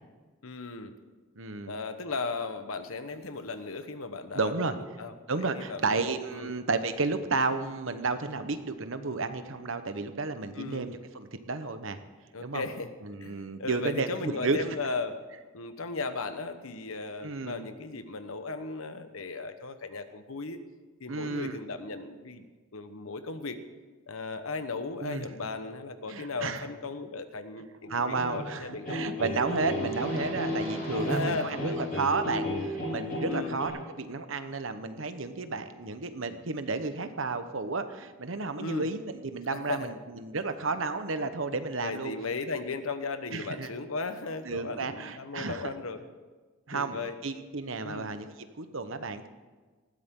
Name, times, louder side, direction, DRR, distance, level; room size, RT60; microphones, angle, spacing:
voice 1, 0.4-1.0 1.7-4.7 5.0-5.1 5.6-6.0 6.3-6.5 10.5-10.9 12.3-15.3 15.5-20.6 21.0-22.5 22.7-23.6 24.1-29.0 29.8-30.0 31.0-31.9 33.3-33.6 38.6-38.9 39.5-39.9 41.8-46.0 46.7-47.2 47.8-48.1, left 3 dB, 85° left, 9 dB, 1.1 m, -36 dB
voice 2, 1.4-1.7 4.3-4.7 5.3-12.0 12.4-12.6 13.0-14.6 17.2-17.7 21.1-21.6 25.0-25.3 26.1-26.7 27.9-42.1 43.3-43.7 44.4-45.7 46.7-47.0 47.2-49.3, right 3 dB, 70° right, 9 dB, 1.1 m, -32 dB
sound 1, 27.8-33.7, left 1 dB, 45° left, 5.3 m, -33 dB
19.5 x 15.5 x 3.8 m, 1.3 s
head